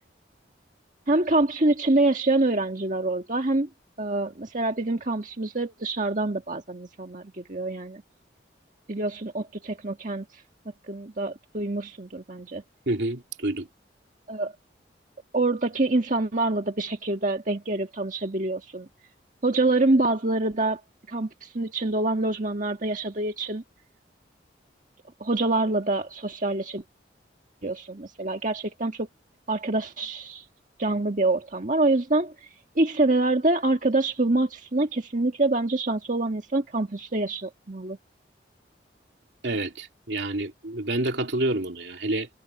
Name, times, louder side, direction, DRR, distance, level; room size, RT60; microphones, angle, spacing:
voice 1, 1.1-3.7 4.0-8.0 8.9-10.2 10.9-12.6 14.3-14.5 15.3-18.9 19.4-20.8 21.1-23.6 25.2-26.8 27.6-29.1 29.5-30.4 30.8-32.5 32.7-38.0, right 2 dB, 45° right, 1.7 m, -26 dB
voice 2, 12.9-13.7 39.4-42.3, right 2 dB, 70° right, 2.7 m, -28 dB
head